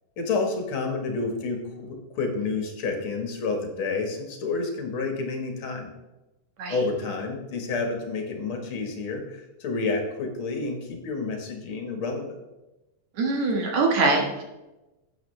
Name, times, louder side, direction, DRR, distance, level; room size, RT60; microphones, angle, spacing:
voice 1, 0.2-5.9 6.7-12.4, left 3 dB, 50° left, 3 dB, 2.0 m, -29 dB
voice 2, 13.2-14.4, right 3 dB, 65° right, 1 dB, 2.6 m, -23 dB
12.0 x 8.8 x 3.3 m, 1.0 s
omnidirectional pair, 3.6 m